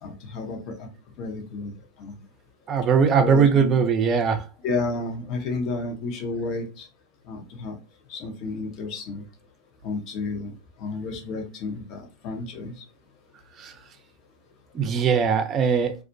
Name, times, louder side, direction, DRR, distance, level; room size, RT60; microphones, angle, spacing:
voice 1, 0.0-0.9 1.2-1.7 2.0-2.2 3.2-3.8 4.6-6.9 7.3-7.7 8.1-9.2 9.8-10.5 10.8-12.7, left 3 dB, 45° left, 0.8 m, -31 dB
voice 2, 2.7-4.4 13.6-13.7 14.7-16.0, right 6 dB, 35° right, 0.5 m, -20 dB
2.4 x 2.1 x 2.6 m
hypercardioid pair, 105°, 0 cm